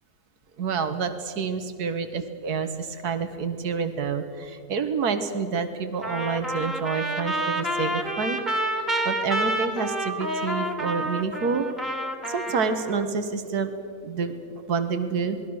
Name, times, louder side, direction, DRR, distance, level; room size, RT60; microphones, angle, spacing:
voice 1, 0.6-8.4 8.7-11.7 12.3-13.7 14.0-15.4, right 5 dB, 80° right, 8 dB, 1.9 m, -28 dB
Trumpet, 6.0-13.0, right 1 dB, ahead, 2.4 m, -29 dB
28.0 x 20.5 x 6.4 m, 2.4 s
omnidirectional pair, 1.7 m